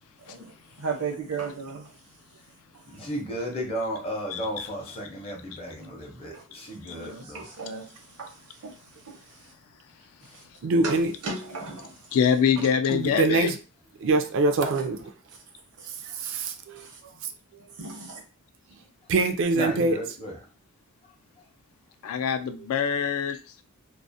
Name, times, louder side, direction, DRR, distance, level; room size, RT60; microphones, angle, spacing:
voice 1, 0.2-1.9 2.9-3.1 6.3-6.4 6.9-8.8 9.0-9.4 10.3-10.4 10.8-11.0 11.2-11.9 12.6-12.7 14.6-14.9 15.8-16.4 16.8-17.0 17.8-18.2, right 4 dB, 85° right, 0.7 m, -36 dB
voice 2, 2.9-7.4 19.5-20.4, equal, 25° left, 0.6 m, -34 dB
voice 3, 4.3-5.0 12.1-13.5 22.0-23.4, left 7 dB, 70° left, 0.3 m, -25 dB
voice 4, 10.6-11.1 13.2-13.5 14.0-15.0 16.2-16.5 19.1-20.0, right 3 dB, 55° right, 0.3 m, -23 dB
2.3 x 2.0 x 2.6 m
head